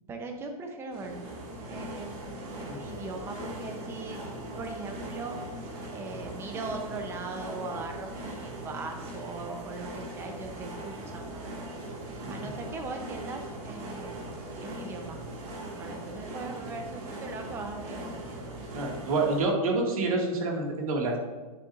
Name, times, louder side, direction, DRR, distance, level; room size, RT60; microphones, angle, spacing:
voice 1, 0.1-1.2 1.7-4.2 4.6-5.4 5.9-11.6 12.3-14.2 14.6-15.3 15.7-18.6, right 3 dB, 15° right, 4 dB, 0.7 m, -40 dB
sound 1, 0.9-19.4, right 1 dB, 30° right, 1.9 m, -40 dB
voice 2, 18.7-21.2, right 3 dB, 70° right, 0 dB, 2.1 m, -27 dB
9.7 x 6.9 x 2.5 m, 1.3 s
hypercardioid pair, 155°, 19 cm